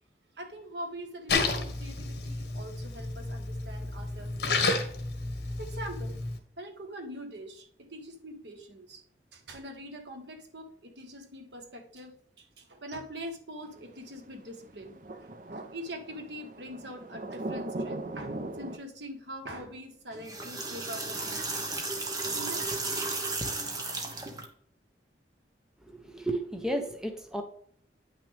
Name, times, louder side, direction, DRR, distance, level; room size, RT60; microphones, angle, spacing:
voice 1, 0.4-4.7 5.6-6.2 6.6-9.0 9.3-21.6 22.2-22.6, equal, 80° right, 5 dB, 1.5 m, -43 dB
Splash splatter, 1.3-6.4, left 3 dB, 65° left, 1.5 m, -31 dB
sound 1, 13.7-18.8, right 2 dB, 50° right, 0.7 m, -39 dB
sound 2, 20.1-24.4, right 3 dB, 20° right, 1.2 m, -34 dB
voice 2, 25.8-27.4, right 1 dB, 5° right, 4 dB, 0.8 m, -33 dB
9.5 x 6.0 x 3.4 m, 0.62 s
head